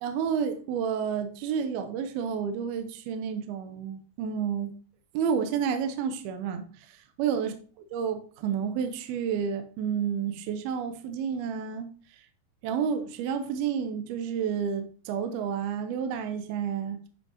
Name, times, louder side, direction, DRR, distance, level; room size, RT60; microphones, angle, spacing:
voice 1, 0.0-4.7 5.1-7.5 7.9-11.9 12.6-17.0, right 7 dB, 75° right, 2.3 m, -30 dB
10.5 x 5.7 x 2.8 m
omnidirectional pair, 5.2 m